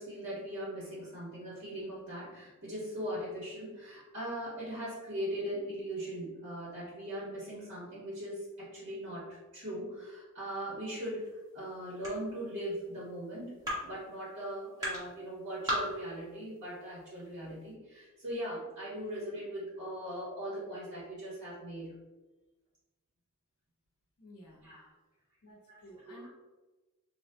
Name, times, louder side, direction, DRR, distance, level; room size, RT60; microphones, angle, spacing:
voice 1, 0.0-9.3 9.5-11.2 11.5-13.5 13.8-21.9 24.6-24.9 25.7-26.3, equal, 55° right, -7 dB, 1.3 m, -40 dB
sound 1, 11.2-17.7, equal, 20° right, 1.2 m, -41 dB
voice 2, 24.2-24.7 25.4-26.3, equal, 80° left, -2 dB, 1.1 m, -53 dB
3.8 x 3.0 x 2.8 m, 1.2 s
head